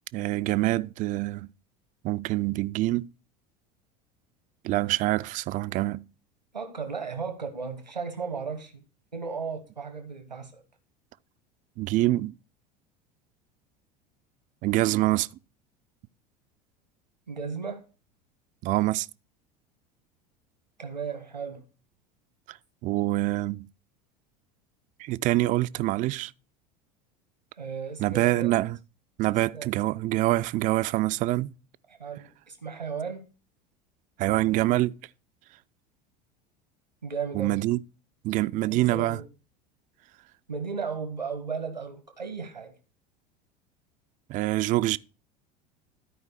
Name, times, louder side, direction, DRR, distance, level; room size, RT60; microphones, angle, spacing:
voice 1, 0.1-1.5 2.0-3.1 4.6-6.0 11.8-12.3 14.6-15.3 18.6-19.1 22.5-22.6 22.8-23.7 25.0-26.3 28.0-28.8 29.2-31.5 34.2-34.9 37.3-37.8 38.2-39.2 44.3-45.0, right 17 dB, 40° right, 0.4 m, -25 dB
voice 2, 6.5-8.8 9.1-10.6 17.3-17.9 20.8-21.6 27.6-28.5 29.5-29.9 31.9-33.2 37.0-37.6 38.6-39.2 40.5-42.7, right 5 dB, 90° right, 1.2 m, -35 dB
13.0 x 4.8 x 4.6 m
figure-of-eight pair, 75°, 21 cm